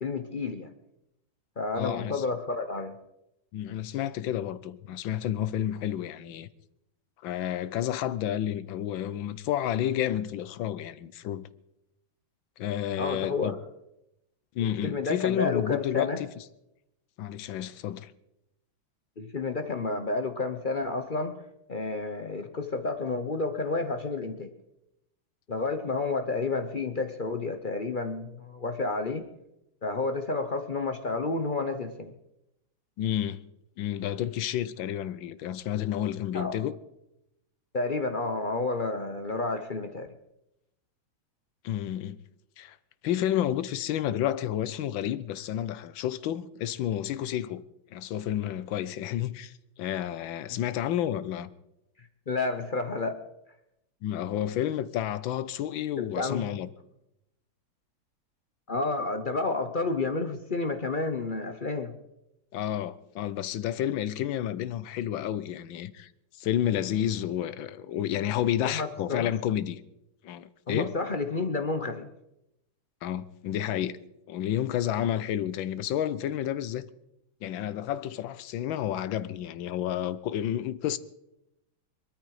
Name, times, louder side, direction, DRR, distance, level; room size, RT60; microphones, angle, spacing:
voice 1, 0.0-0.7 1.6-2.9 13.0-13.5 14.6-16.2 19.2-21.4 21.7-24.5 25.5-29.2 29.8-32.1 36.3-36.6 37.7-40.1 50.5-50.6 52.3-53.2 56.0-56.5 58.7-61.9 68.6-69.3 70.7-72.1, left 3 dB, 45° left, 0.6 m, -30 dB
voice 2, 1.7-2.2 3.5-6.5 7.2-11.5 12.6-13.5 14.5-16.3 17.2-18.1 33.0-33.4 33.8-36.7 41.6-42.2 42.6-42.8 43.0-47.6 47.9-51.5 54.0-56.7 62.5-66.1 66.4-69.8 70.2-70.9 73.0-73.9 74.3-76.9 77.4-81.0, left 11 dB, 75° left, 1.5 m, -30 dB
22.5 x 13.0 x 4.8 m
omnidirectional pair, 2.3 m